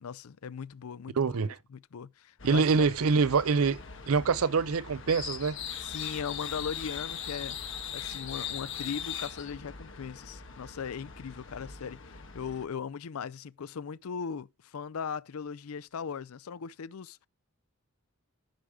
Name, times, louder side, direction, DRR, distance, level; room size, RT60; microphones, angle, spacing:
voice 1, 0.0-2.9 5.8-7.6 7.9-17.3, left 6 dB, 80° left, 0.5 m, -39 dB
voice 2, 1.2-1.6 2.4-3.8 4.1-5.6, right 5 dB, 80° right, 0.5 m, -25 dB
sound 1, 2.4-12.6, left 7 dB, 60° left, 1.6 m, -40 dB
14.5 x 4.9 x 3.6 m
head